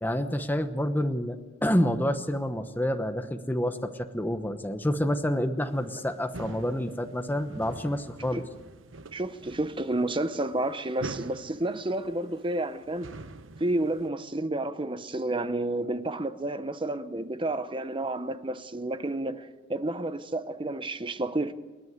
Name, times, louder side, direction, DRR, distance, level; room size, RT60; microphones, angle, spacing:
voice 1, 0.0-8.4, equal, 10° left, 1.0 m, -28 dB
sound 1, 5.6-14.1, right 3 dB, 75° right, 1.0 m, -45 dB
voice 2, 9.1-13.1 13.6-21.6, right 2 dB, 25° right, 0.9 m, -30 dB
28.5 x 10.5 x 9.5 m
head